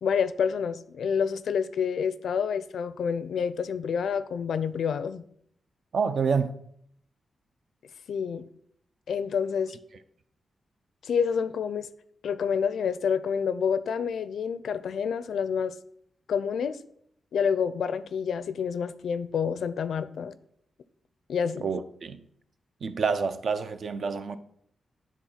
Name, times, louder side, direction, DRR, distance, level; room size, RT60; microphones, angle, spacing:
voice 1, 0.0-5.3 8.1-8.5 9.1-9.8 11.0-11.9 12.2-15.7 16.3-16.8 17.3-20.3 21.3-21.7, left 6 dB, 85° left, 0.5 m, -28 dB
voice 2, 5.9-6.6 21.6-22.2 22.8-24.4, right 5 dB, 60° right, 0.6 m, -28 dB
10.5 x 3.8 x 5.7 m
wide cardioid pair, 150°, 0 cm